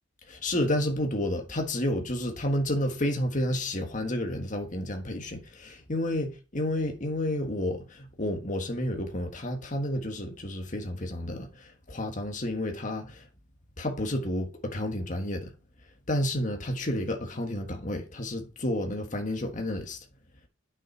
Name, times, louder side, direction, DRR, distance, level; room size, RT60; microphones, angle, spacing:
voice 1, 0.3-13.2 13.8-15.5 16.1-20.0, left 1 dB, 40° left, 1.5 m, -30 dB
8.6 x 6.5 x 4.4 m
head